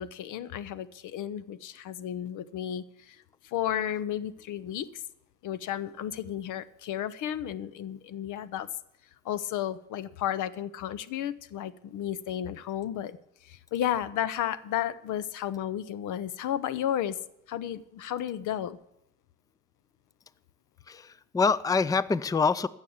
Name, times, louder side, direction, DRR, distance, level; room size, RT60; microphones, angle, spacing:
voice 1, 0.0-4.9 5.4-8.7 9.2-13.2 13.4-17.2 17.5-18.8, left 11 dB, 80° left, 0.7 m, -33 dB
voice 2, 20.9-22.7, left 5 dB, 10° left, 0.4 m, -25 dB
15.5 x 6.6 x 7.1 m
cardioid pair, 90°, 30 cm